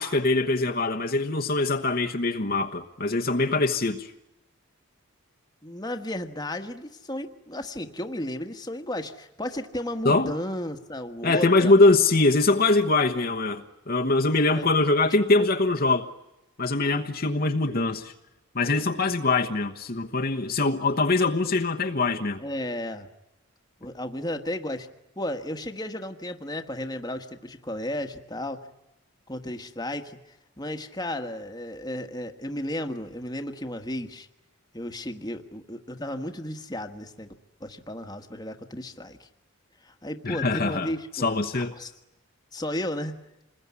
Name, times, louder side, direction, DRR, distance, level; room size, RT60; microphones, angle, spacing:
voice 1, 0.0-4.1 10.0-10.3 11.2-16.1 16.6-18.1 18.5-22.4 40.2-41.7, left 2 dB, 45° left, 1.2 m, -23 dB
voice 2, 5.6-11.7 13.2-13.3 14.5-14.7 15.3-15.5 22.4-23.1 23.8-24.9 25.2-28.7 29.3-30.2 30.6-34.3 34.7-37.3 37.6-39.3 39.8-41.9 42.5-43.2, left 1 dB, 15° left, 1.5 m, -34 dB
28.0 x 21.0 x 9.6 m
head